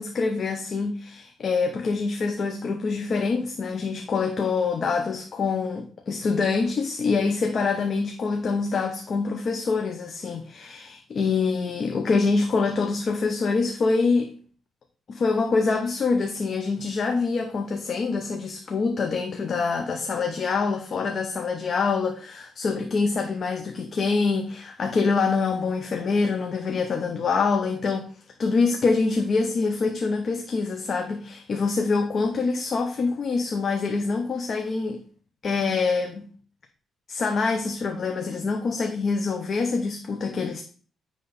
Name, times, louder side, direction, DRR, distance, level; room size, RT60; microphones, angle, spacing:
voice 1, 0.0-14.3 15.1-28.1 28.4-35.0 35.4-36.3 37.1-40.6, left 4 dB, 50° left, 0.7 m, -25 dB
9.4 x 3.2 x 4.0 m
cardioid pair, 90°, 0 cm